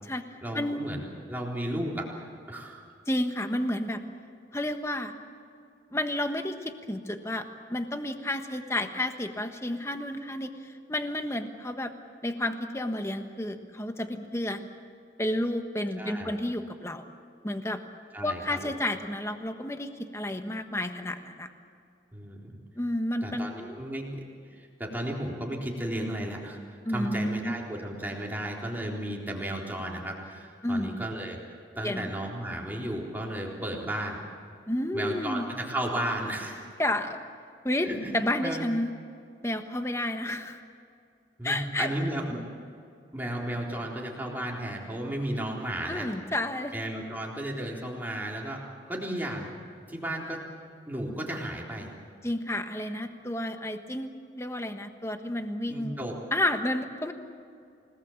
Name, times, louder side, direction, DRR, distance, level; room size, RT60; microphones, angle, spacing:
voice 1, 0.4-2.8 16.0-16.3 18.1-18.7 22.1-22.6 23.2-24.2 24.5-31.4 31.8-34.2 34.9-36.7 37.8-38.1 38.4-38.6 41.4-42.4 43.1-46.1 46.7-48.6 48.9-49.6 49.9-50.4 50.9-51.9 55.7-56.1, right 1 dB, 10° right, -2 dB, 3.8 m, -34 dB
voice 2, 3.1-4.0 4.5-5.1 5.9-11.9 12.2-14.6 15.2-17.1 17.4-17.8 18.2-21.5 22.8-23.5 26.8-27.5 30.6-31.0 31.8-32.1 34.7-35.5 36.8-37.2 37.6-37.9 38.1-38.9 39.4-40.6 41.4-41.9 45.9-46.7 52.2-56.0 56.3-57.1, left 1 dB, 15° left, 6 dB, 1.4 m, -31 dB
30.0 x 19.0 x 7.3 m, 2.4 s
head